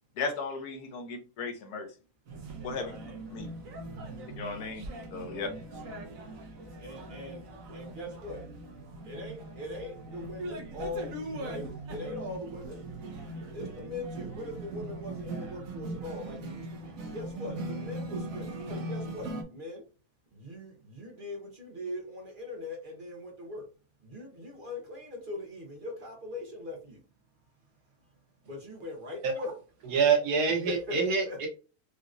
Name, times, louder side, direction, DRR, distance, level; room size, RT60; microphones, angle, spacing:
voice 1, 0.2-1.9 2.6-2.9 3.3-3.5 4.4-5.5, left 4 dB, 80° left, 1.4 m, -36 dB
sound 1, 2.3-19.4, right 2 dB, 65° right, 1.2 m, -40 dB
voice 2, 6.8-7.4 7.7-8.4 9.0-12.8 13.5-19.8 20.3-23.6 24.0-27.0 28.4-29.5 30.7-30.9 31.3-31.4, left 2 dB, 35° right, 1.2 m, -41 dB
voice 3, 29.9-31.5, right 5 dB, 85° right, 1.6 m, -25 dB
4.9 x 2.9 x 2.5 m
omnidirectional pair, 1.6 m